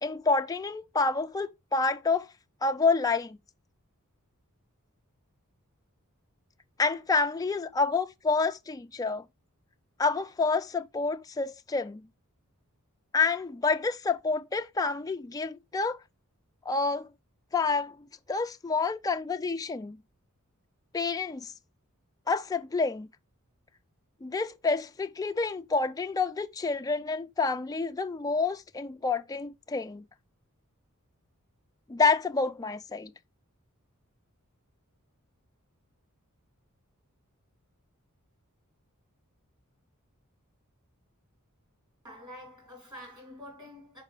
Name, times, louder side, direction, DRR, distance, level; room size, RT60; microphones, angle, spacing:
voice 1, 0.0-2.3 2.6-3.4 6.8-9.2 10.0-12.0 13.1-16.0 16.7-17.1 17.5-18.0 18.3-20.0 20.9-21.5 22.3-23.1 24.2-30.0 31.9-33.1, left 4 dB, 15° left, 0.3 m, -28 dB
voice 2, 42.0-44.0, equal, 20° right, 3.3 m, -47 dB
5.8 x 4.7 x 4.4 m
head